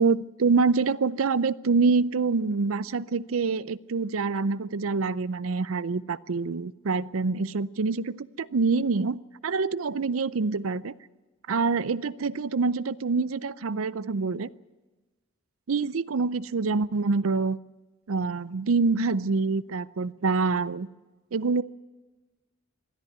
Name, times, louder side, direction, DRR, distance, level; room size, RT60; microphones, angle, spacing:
voice 1, 0.0-10.9 11.5-14.5 15.7-17.6 18.1-20.9 21.3-21.6, right 4 dB, 80° right, 17 dB, 0.6 m, -26 dB
22.0 x 13.5 x 9.5 m, 1.2 s
head